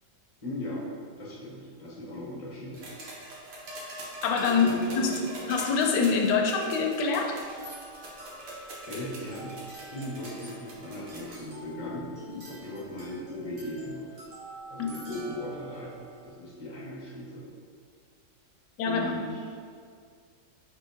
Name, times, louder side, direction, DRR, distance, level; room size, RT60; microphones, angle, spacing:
voice 1, 0.4-0.8 1.2-2.8 4.5-5.2 8.9-12.1 12.4-14.1 14.7-17.4 18.8-19.4, left 1 dB, 30° left, -7 dB, 0.6 m, -38 dB
sound 1, 2.7-11.4 12.6-12.7, right 1 dB, 60° right, 1.1 m, -43 dB
voice 2, 4.2-4.7 4.9-5.1 5.5-7.4 12.3-12.4 14.8-14.9 18.8-19.1, left 5 dB, 80° left, 2 dB, 1.2 m, -25 dB
sound 2, 7.4-16.3, right 2 dB, 80° right, 2.1 m, -47 dB
4.7 x 3.6 x 2.7 m, 2.1 s
omnidirectional pair, 1.8 m